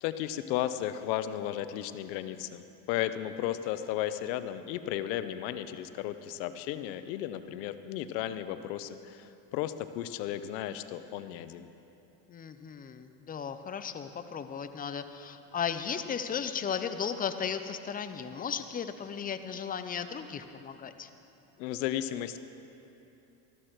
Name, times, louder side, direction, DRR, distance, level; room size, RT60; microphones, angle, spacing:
voice 1, 0.0-2.6 2.9-11.7 21.6-22.4, left 12 dB, 85° left, 11 dB, 0.8 m, -34 dB
voice 2, 12.3-21.1, left 7 dB, 20° left, 9 dB, 0.4 m, -35 dB
13.5 x 12.5 x 4.5 m, 2.9 s
supercardioid pair, 115°, 50 cm